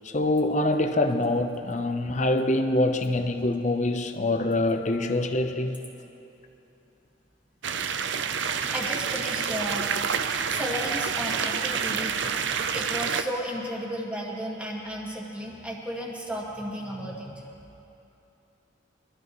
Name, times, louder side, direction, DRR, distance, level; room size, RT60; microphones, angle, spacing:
voice 1, 0.0-5.8, left 2 dB, 35° left, 0.7 m, -25 dB
sound 1, 7.6-13.2, right 6 dB, 65° right, 0.5 m, -28 dB
voice 2, 8.7-10.0 10.5-12.2 12.7-17.5, equal, 5° right, 1.8 m, -34 dB
23.5 x 13.5 x 3.1 m
head